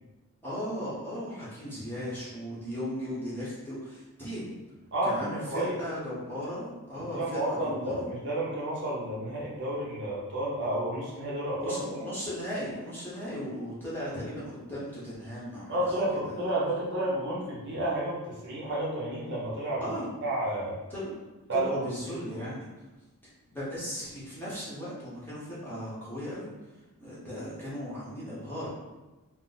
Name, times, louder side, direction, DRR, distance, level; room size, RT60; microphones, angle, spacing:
voice 1, 0.4-4.6 5.0-8.0 11.6-16.3 19.8-20.1 20.9-21.1 21.5-22.7 23.5-26.5 27.0-28.7, equal, 10° left, -9 dB, 0.8 m, -37 dB
voice 2, 4.9-5.7 7.0-12.1 15.7-19.9 20.2-20.7 21.5-21.7 22.1-22.5, right 1 dB, 50° right, -6 dB, 0.8 m, -31 dB
2.5 x 2.1 x 3.9 m, 1.1 s
head